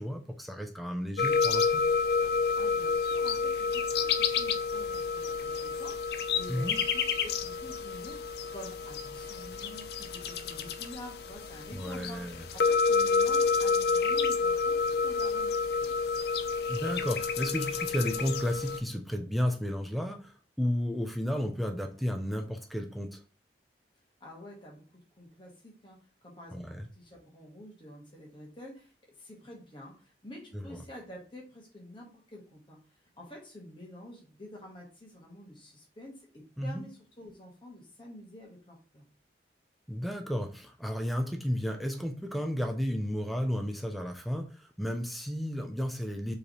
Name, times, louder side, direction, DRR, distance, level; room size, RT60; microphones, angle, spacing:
voice 1, 0.0-1.8 6.5-6.8 11.7-12.5 16.7-23.2 26.5-26.9 30.5-30.8 36.6-36.9 39.9-46.3, equal, ahead, 4 dB, 0.4 m, -33 dB
sound 1, 1.2-18.8, left 5 dB, 60° left, 0.4 m, -29 dB
voice 2, 2.6-6.0 6.3-8.2 8.5-16.1 24.2-26.0 26.2-28.9 29.2-32.8 33.2-39.0, left 1 dB, 30° left, -2 dB, 1.4 m, -48 dB
4.7 x 3.3 x 3.0 m, 0.37 s
head